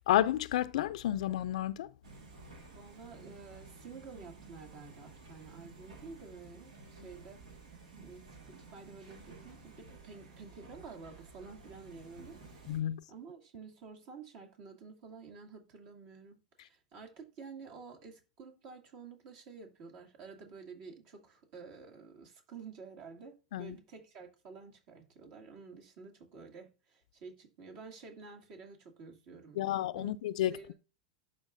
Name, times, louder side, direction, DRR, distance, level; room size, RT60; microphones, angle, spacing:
voice 1, 0.0-1.9 12.7-13.0 23.5-23.8 29.6-30.7, left 13 dB, 70° left, 0.4 m, -31 dB
sound 1, 2.0-12.8, right 3 dB, 80° right, 2.0 m, -53 dB
voice 2, 2.7-7.4 8.0-12.8 13.1-30.1 30.5-30.7, right 5 dB, 55° right, 2.4 m, -51 dB
12.0 x 4.4 x 2.6 m
hypercardioid pair, 100°, 4 cm